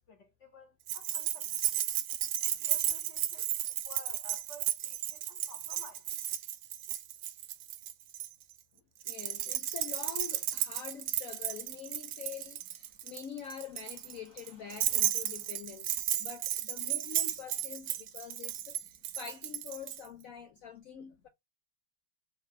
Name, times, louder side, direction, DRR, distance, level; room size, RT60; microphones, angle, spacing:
voice 1, 0.0-1.9 2.5-3.5 3.8-6.1 9.6-9.7 12.9-13.0 21.0-21.2, left 1 dB, 45° left, 1.3 m, -54 dB
Keys jangling, 0.9-8.3 9.0-20.0, right 12 dB, 80° right, 1.4 m, -34 dB
voice 2, 9.1-15.9 16.2-21.3, left 7 dB, 75° left, 0.7 m, -45 dB
4.1 x 2.8 x 3.2 m
omnidirectional pair, 2.1 m